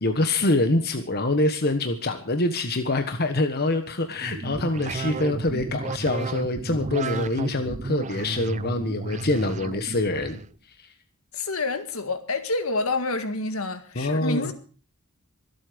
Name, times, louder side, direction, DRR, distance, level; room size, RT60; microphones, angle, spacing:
voice 1, 0.0-10.4 10.8-10.9 13.9-14.5, left 2 dB, 45° left, 1.3 m, -25 dB
sound 1, 4.1-10.5, right 3 dB, 35° right, 0.6 m, -32 dB
voice 2, 11.3-14.5, left 3 dB, 70° left, 1.9 m, -28 dB
24.0 x 8.5 x 5.1 m
head